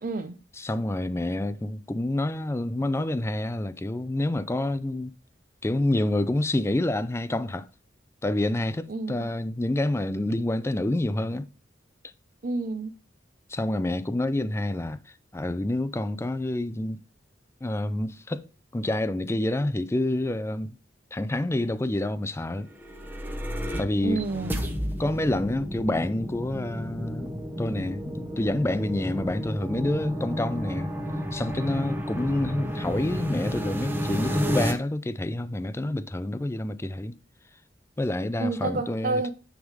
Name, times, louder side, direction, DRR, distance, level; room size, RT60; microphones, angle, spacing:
voice 1, 0.0-0.3 8.9-9.2 12.4-12.9 24.0-24.6 38.4-39.3, right 3 dB, 45° right, 0.6 m, -29 dB
voice 2, 0.5-5.1 5.6-7.7 8.2-11.5 13.5-15.0 15.3-17.0 17.6-18.5 18.7-20.7 21.1-22.7 23.8-24.3 25.0-30.9 31.3-37.2 38.0-39.2, left 1 dB, 15° left, 0.4 m, -28 dB
sound 1, 22.7-34.7, equal, 10° right, 1.0 m, -32 dB
9.6 x 3.7 x 4.8 m
head